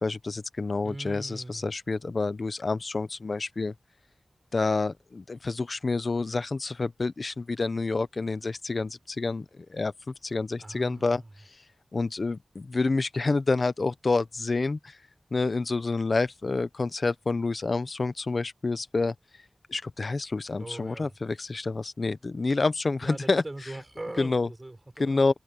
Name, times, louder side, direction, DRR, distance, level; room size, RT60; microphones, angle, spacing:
voice 1, 0.0-3.7 4.5-11.2 11.9-15.0 15.3-19.1 19.7-23.4 24.2-24.5 25.0-25.4, left 3 dB, 60° left, 0.9 m, -28 dB
voice 2, 0.8-1.7 10.6-11.3 20.6-21.2 23.0-25.2, right 2 dB, 30° right, 4.6 m, -41 dB
wide cardioid pair, 75°, 0 cm